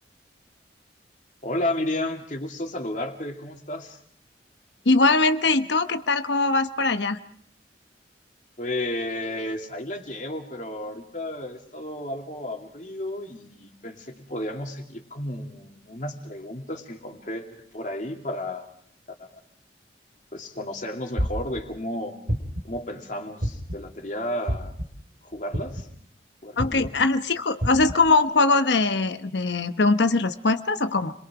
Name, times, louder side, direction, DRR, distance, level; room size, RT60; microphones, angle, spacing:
voice 1, 1.4-4.0 8.6-18.7 19.1-19.3 20.3-22.1 22.6-24.7 25.2-25.9 26.4-26.9, left 1 dB, 45° left, 2 dB, 2.6 m, -32 dB
voice 2, 4.9-7.2 26.6-31.1, left 3 dB, 80° left, 9 dB, 1.0 m, -21 dB
sound 1, 21.2-21.6 22.3-22.7 23.4-23.9 24.5-24.8 25.5-25.9 26.6-26.9 27.6-27.9, equal, 70° right, 4.2 m, -27 dB
30.0 x 22.0 x 4.9 m, 0.62 s
head